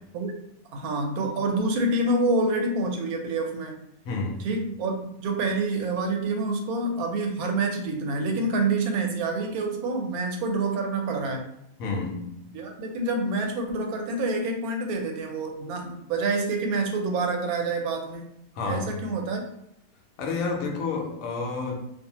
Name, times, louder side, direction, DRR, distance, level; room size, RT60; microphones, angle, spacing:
voice 1, 0.7-3.8 4.4-11.5 12.5-18.3 18.6-19.4, right 2 dB, 75° right, 2 dB, 1.0 m, -27 dB
voice 2, 4.0-4.5 11.8-12.4 18.5-19.0 20.2-21.8, left 4 dB, 70° left, 1 dB, 0.9 m, -30 dB
2.6 x 2.3 x 2.7 m, 0.77 s
omnidirectional pair, 1.7 m